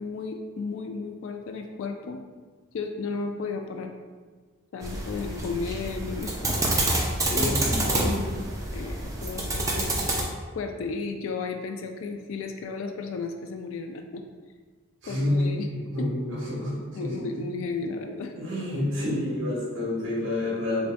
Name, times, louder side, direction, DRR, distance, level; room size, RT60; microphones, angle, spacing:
voice 1, 0.0-2.2 2.7-3.9 4.7-6.5 7.4-9.9 10.6-14.2 15.1-15.7 16.0-16.1 16.9-18.3, left 4 dB, 75° left, 4 dB, 0.3 m, -34 dB
sound 1, 4.8-10.2, right 1 dB, 15° right, 0.5 m, -28 dB
voice 2, 7.2-8.1 15.0-16.7 17.0-17.4 18.3-20.9, left 1 dB, 70° right, -5 dB, 1.5 m, -29 dB
6.6 x 2.6 x 2.2 m, 1.5 s
head